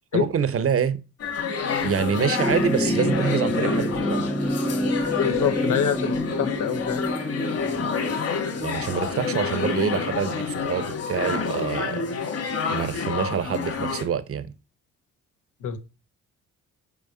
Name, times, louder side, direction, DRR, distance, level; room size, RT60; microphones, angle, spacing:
voice 1, 0.1-1.0 1.8-4.3 8.6-12.1 12.7-14.5, right 7 dB, 50° right, 1.1 m, -26 dB
sound 1, 1.2-14.0, left 5 dB, 50° left, 2.9 m, -28 dB
sound 2, 2.1-10.8 12.0-12.1, equal, ahead, 0.5 m, -29 dB
voice 2, 5.2-7.0 15.6-15.8, left 8 dB, 80° left, 1.5 m, -25 dB
7.7 x 4.8 x 4.3 m
cardioid pair, 90°, 30 cm